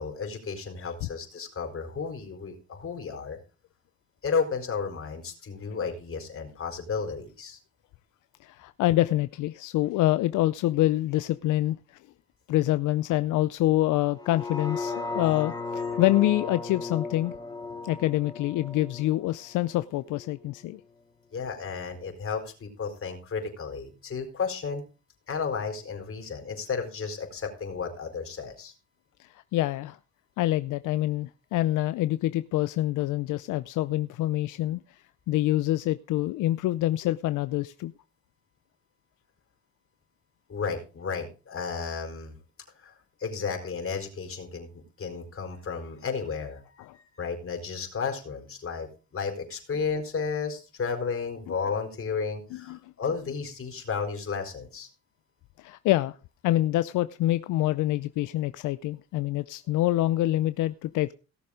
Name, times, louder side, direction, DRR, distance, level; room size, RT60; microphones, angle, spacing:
voice 1, 0.0-3.4 4.2-7.6 15.1-15.2 15.8-16.0 21.3-24.8 25.3-28.7 40.5-42.3 42.8-42.9 43.2-54.9, left 5 dB, 45° left, 4.6 m, -33 dB
voice 2, 8.4-11.8 12.5-17.3 17.8-20.8 29.2-30.0 30.4-35.0 35.3-37.9 46.8-47.0 52.5-52.9 55.6-56.1 56.4-61.1, left 15 dB, 85° left, 0.6 m, -26 dB
sound 1, 14.1-20.3 20.7-20.8, left 4 dB, 15° left, 3.7 m, -36 dB
17.5 x 6.9 x 5.0 m
cardioid pair, 90°, 30 cm